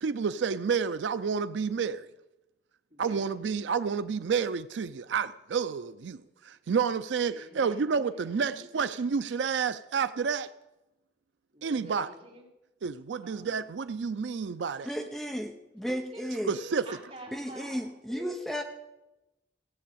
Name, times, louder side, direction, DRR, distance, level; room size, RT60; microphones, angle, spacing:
voice 1, 0.0-2.1 3.0-10.5 11.6-12.1 12.8-14.9 16.5-16.9, right 6 dB, 85° right, 12 dB, 0.4 m, -30 dB
voice 2, 2.9-3.3 7.3-7.8 8.1-8.7 11.5-12.4 13.2-13.5 15.8-18.4, right 1 dB, 35° right, -2 dB, 3.6 m, -47 dB
voice 3, 14.9-16.6 17.3-18.6, equal, ahead, 4 dB, 0.7 m, -34 dB
16.5 x 7.6 x 8.5 m, 0.99 s
head